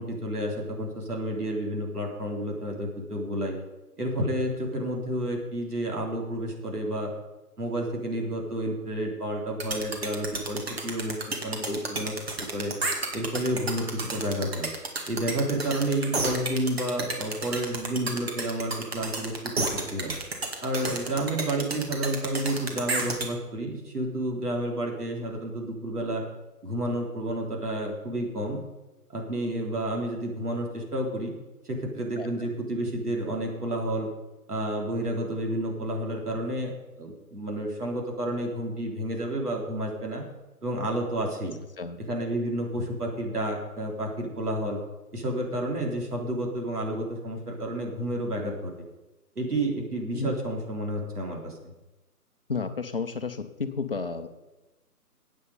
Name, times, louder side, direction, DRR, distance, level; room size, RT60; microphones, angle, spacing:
voice 1, 0.0-3.6 4.0-7.1 7.6-12.1 12.5-12.7 13.1-14.7 15.1-20.1 20.6-26.2 26.6-28.6 29.1-31.3 31.6-34.1 34.5-40.2 40.6-41.6 42.1-44.8 45.1-48.7 49.4-51.6, right 1 dB, 70° right, 0 dB, 3.9 m, -30 dB
sound 1, 9.6-23.3, right 3 dB, 40° right, 2.2 m, -31 dB
voice 2, 52.5-54.3, left 5 dB, 35° left, 9 dB, 0.9 m, -32 dB
16.0 x 8.6 x 5.3 m, 1.1 s
figure-of-eight pair, 150°, 47 cm